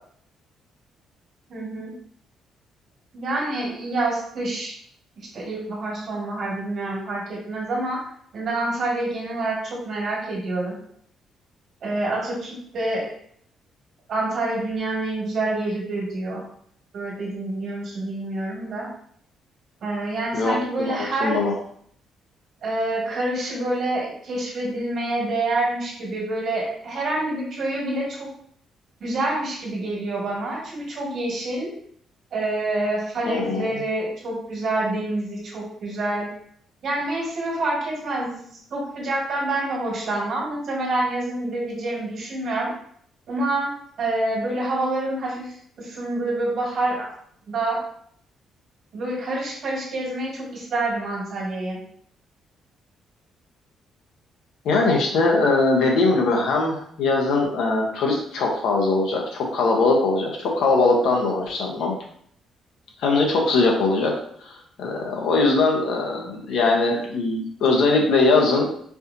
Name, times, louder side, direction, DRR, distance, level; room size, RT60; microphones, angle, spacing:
voice 1, 1.5-1.9 3.1-4.7 5.2-8.0 8.3-10.8 11.8-13.1 14.1-16.4 16.9-18.9 19.8-21.4 22.6-28.3 29.0-31.7 32.3-36.3 36.8-38.4 38.7-42.7 43.3-43.7 44.0-47.1 47.5-47.8 48.9-51.8, right 2 dB, 50° right, -3 dB, 1.6 m, -27 dB
voice 2, 20.3-21.5 33.3-33.7 54.6-61.9 63.0-64.1 64.4-68.7, left 3 dB, 75° left, 1 dB, 0.9 m, -21 dB
4.7 x 2.7 x 2.6 m, 0.65 s
cardioid pair, 160°, 0 cm